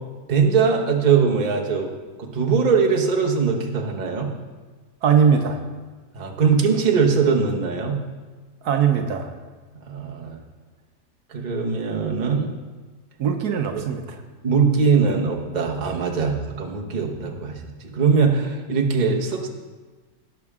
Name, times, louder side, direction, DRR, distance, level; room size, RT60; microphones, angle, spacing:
voice 1, 0.3-1.9 2.2-4.3 6.1-8.0 9.9-10.4 11.3-12.5 14.4-19.5, right 5 dB, 30° right, 0 dB, 1.0 m, -21 dB
voice 2, 5.0-5.6 8.6-9.3 13.2-14.2, right 7 dB, 70° right, 5 dB, 1.3 m, -20 dB
17.5 x 5.9 x 3.6 m, 1.3 s
omnidirectional pair, 1.8 m